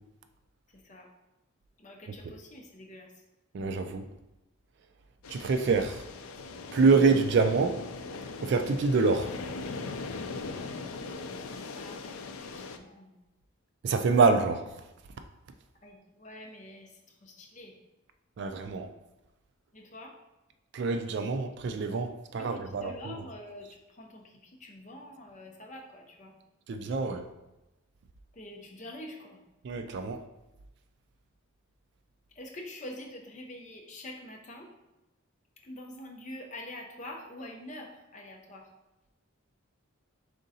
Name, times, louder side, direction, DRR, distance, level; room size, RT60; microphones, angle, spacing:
voice 1, 0.7-1.1 1.8-3.1 11.7-13.1 15.8-16.9 17.2-17.7 19.7-20.1 22.4-24.3 24.6-26.3 28.3-29.4 32.4-34.7 35.6-38.7, left 1 dB, 35° left, 0.6 m, -45 dB
voice 2, 3.5-4.1 5.3-6.0 6.7-7.8 8.4-9.3 13.8-14.7 18.4-18.9 20.7-23.2 26.7-27.3 29.6-30.3, right 4 dB, 55° right, 0.3 m, -26 dB
sound 1, 5.2-12.8, left 3 dB, 75° left, 0.4 m, -40 dB
5.1 x 3.6 x 2.7 m
head